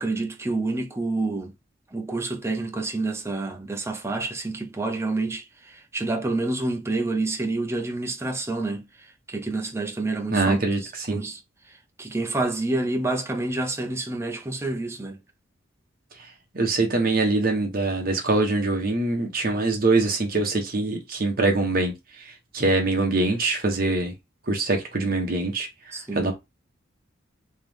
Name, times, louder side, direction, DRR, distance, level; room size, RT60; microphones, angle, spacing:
voice 1, 0.0-1.5 1.9-11.4 11.7-15.2 25.9-26.3, right 2 dB, 15° right, 0.6 m, -28 dB
voice 2, 10.3-11.2 16.5-24.1 24.5-25.7 26.1-26.3, right 2 dB, 45° right, 1.1 m, -23 dB
3.4 x 3.0 x 3.5 m
head